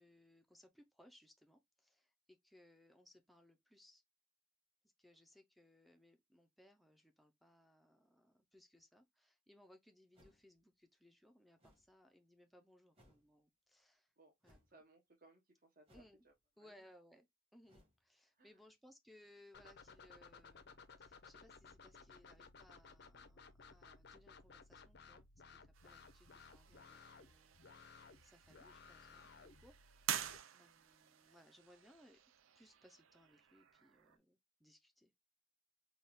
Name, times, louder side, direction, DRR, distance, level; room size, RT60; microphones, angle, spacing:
voice 1, 0.0-4.0 4.8-14.1 14.4-14.8 15.9-16.2 16.6-17.3 17.5-27.6 28.2-30.3 30.6-32.2 32.5-35.1, left 1 dB, ahead, 0.4 m, -66 dB
sound 1, 10.1-10.6 11.6-11.9 12.9-13.3 14.4-14.7 15.9-16.3 17.6-18.0, equal, 30° right, 1.4 m, -68 dB
voice 2, 14.7-16.3 16.6-16.9 18.3-18.5 30.5-30.7, right 2 dB, 45° right, 0.8 m, -67 dB
sound 2, 19.5-30.4, left 5 dB, 55° left, 0.5 m, -59 dB
sound 3, 25.7-34.2, right 10 dB, 85° right, 0.5 m, -49 dB
4.0 x 2.3 x 3.4 m
head